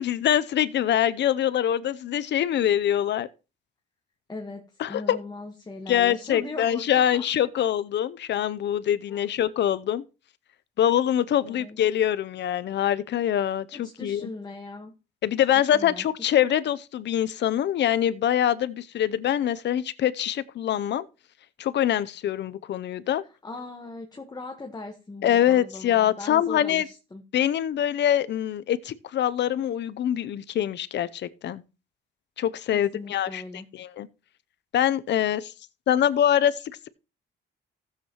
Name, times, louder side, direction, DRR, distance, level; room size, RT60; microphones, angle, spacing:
voice 1, 0.0-3.3 4.8-5.2 5.9-10.0 10.8-14.2 15.2-21.0 21.6-23.2 25.2-26.9 27.3-31.6 32.4-33.4 33.7-34.1 34.7-35.5 35.9-36.9, left 10 dB, 60° left, 0.7 m, -24 dB
voice 2, 4.3-7.3 9.1-9.3 11.4-11.8 13.7-14.9 15.3-16.3 23.2-27.2 32.7-33.7, left 2 dB, 20° left, 1.3 m, -40 dB
15.5 x 7.5 x 3.0 m
cardioid pair, 90°, 20 cm